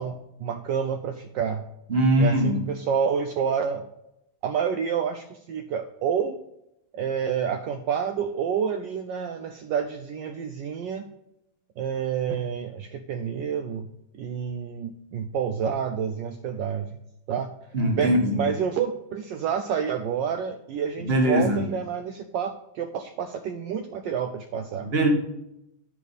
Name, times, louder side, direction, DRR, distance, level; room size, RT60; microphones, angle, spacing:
voice 1, 0.0-1.6 2.2-3.9 4.4-6.4 6.9-11.1 11.8-13.9 14.1-16.9 17.3-17.5 17.9-24.9, right 7 dB, 75° right, 7 dB, 1.2 m, -29 dB
voice 2, 1.9-2.7 17.7-18.5 21.0-21.7 24.8-25.1, right 1 dB, 30° right, 2 dB, 1.5 m, -22 dB
11.0 x 5.1 x 4.0 m, 0.84 s
omnidirectional pair, 2.2 m